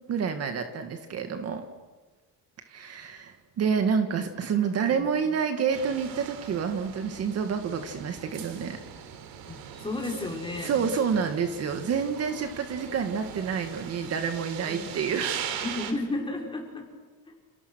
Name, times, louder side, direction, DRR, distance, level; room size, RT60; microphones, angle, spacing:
voice 1, 0.1-1.6 2.7-8.8 10.6-15.5, right 6 dB, 45° right, 6 dB, 2.1 m, -28 dB
voice 2, 4.5-5.1 9.5-10.7 11.1-11.2 11.5-11.7 14.7-14.9 15.6-16.9 17.3-17.4, left 2 dB, 15° left, 1 dB, 5.5 m, -34 dB
sound 1, 5.7-15.9, right 9 dB, 80° right, 3.6 m, -40 dB
30.0 x 29.5 x 6.5 m, 1.2 s
cardioid pair, 155°, 35 cm